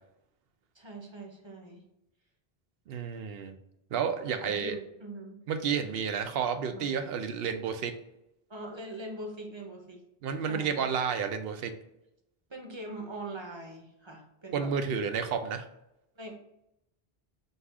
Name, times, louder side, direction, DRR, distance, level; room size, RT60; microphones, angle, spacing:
voice 1, 0.7-1.9 4.3-5.4 6.7-6.9 8.5-10.0 10.5-10.9 12.5-14.7 16.2-16.3, right 1 dB, 30° right, 2 dB, 0.7 m, -42 dB
voice 2, 2.9-3.6 3.9-4.7 5.5-7.9 10.2-11.7 14.5-15.7, right 6 dB, 75° right, 7 dB, 0.8 m, -31 dB
5.4 x 2.4 x 3.5 m, 0.86 s
omnidirectional pair, 1.0 m